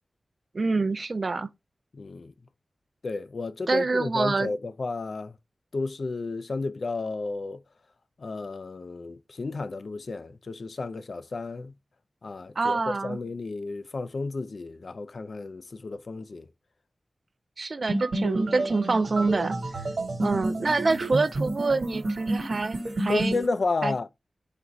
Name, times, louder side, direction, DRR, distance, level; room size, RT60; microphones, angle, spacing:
voice 1, 0.5-1.5 3.7-4.5 12.6-13.2 17.6-19.6 20.2-23.4 23.8-23.9, right 3 dB, 55° right, 0.3 m, -26 dB
voice 2, 1.9-2.3 3.0-5.4 5.7-7.6 8.2-11.7 12.2-16.5 20.2-20.4 23.1-24.1, left 3 dB, 65° left, 0.3 m, -32 dB
sound 1, 17.9-23.5, right 1 dB, 80° right, 1.2 m, -30 dB
3.9 x 2.5 x 4.4 m
wide cardioid pair, 80°, 0 cm